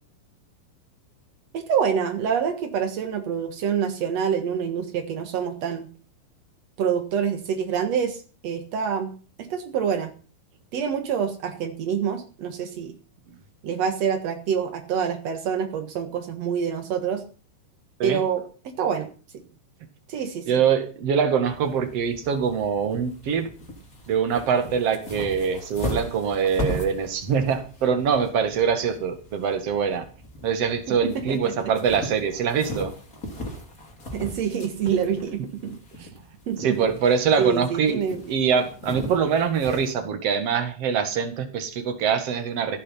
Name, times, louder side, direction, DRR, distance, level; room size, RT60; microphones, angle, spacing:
voice 1, 1.5-5.9 6.8-10.1 10.7-12.9 13.6-17.2 18.0-19.1 20.1-20.5 30.9-31.7 34.1-36.1 36.5-36.9 37.4-38.2, right 7 dB, 70° right, 6 dB, 1.5 m, -27 dB
voice 2, 20.5-23.5 24.1-30.1 30.4-32.9 36.0-36.1 36.6-42.8, right 6 dB, 50° right, 8 dB, 1.9 m, -24 dB
sound 1, 21.4-39.9, equal, 20° left, 3.0 m, -38 dB
15.5 x 9.3 x 5.7 m, 0.39 s
omnidirectional pair, 5.6 m